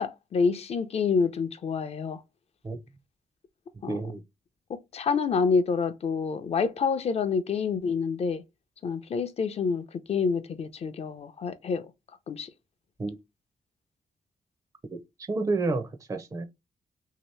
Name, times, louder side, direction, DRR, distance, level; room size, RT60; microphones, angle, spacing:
voice 1, 0.0-2.2 3.8-4.0 4.7-8.4 8.8-11.9 12.3-12.5, left 5 dB, 50° left, 0.5 m, -27 dB
voice 2, 3.9-4.2 13.0-13.2 14.9-15.0 15.3-16.5, right 3 dB, 25° right, 0.5 m, -29 dB
2.9 x 2.8 x 3.2 m
cardioid pair, 115°, 14 cm